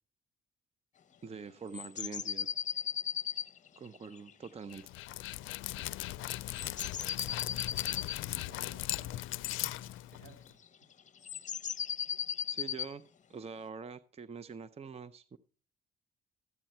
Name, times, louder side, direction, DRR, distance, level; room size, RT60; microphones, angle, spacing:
voice 1, 1.2-2.5 3.8-4.9 12.5-13.0 13.3-15.4, right 5 dB, 30° right, 14 dB, 0.6 m, -44 dB
sound 1, 1.7-4.8 6.5-8.2 10.5-10.7 11.1-12.9, left 9 dB, 40° left, 0.8 m, -36 dB
Dog, 4.7-10.5, left 16 dB, 90° left, 0.4 m, -38 dB
voice 2, 7.4-10.6 11.8-12.0, right 2 dB, 80° right, 4 dB, 4.0 m, -58 dB
13.5 x 9.0 x 4.3 m, 0.38 s
cardioid pair, 90°, 20 cm